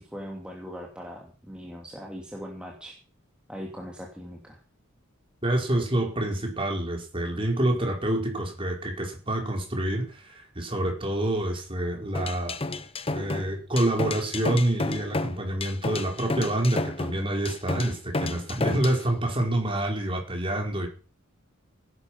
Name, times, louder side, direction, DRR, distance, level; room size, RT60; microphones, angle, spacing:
voice 1, 0.0-3.0 3.5-4.6, equal, 5° right, -1 dB, 2.6 m, -40 dB
voice 2, 5.4-12.6 13.1-20.9, right 1 dB, 25° right, 1 dB, 4.6 m, -27 dB
sound 1, 12.1-19.0, left 2 dB, 25° left, 1.0 m, -31 dB
17.5 x 11.0 x 5.8 m, 0.38 s
head